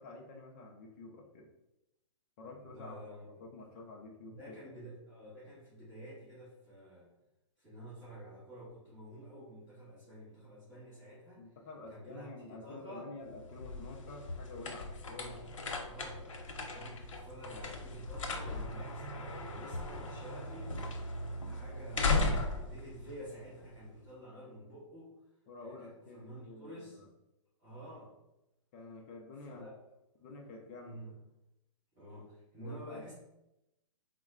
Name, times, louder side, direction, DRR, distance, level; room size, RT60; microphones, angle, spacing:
voice 1, 0.0-1.5 2.4-4.6 11.4-15.4 21.6-21.8 25.5-27.0 28.7-29.7 30.2-31.0 32.6-33.1, left 3 dB, 25° left, 1 dB, 0.5 m, -49 dB
voice 2, 2.4-3.4 4.3-7.1 7.6-11.5 11.9-13.1 15.1-15.4 15.8-20.9 21.4-25.1 25.6-27.0 27.6-28.1 29.4-29.8 30.8-31.2 31.9-33.1, equal, 20° right, -14 dB, 1.4 m, -50 dB
sound 1, 13.3-24.0, left 2 dB, 85° left, 0.8 m, -37 dB
4.0 x 2.2 x 3.6 m, 0.90 s
hypercardioid pair, 160°, 16 cm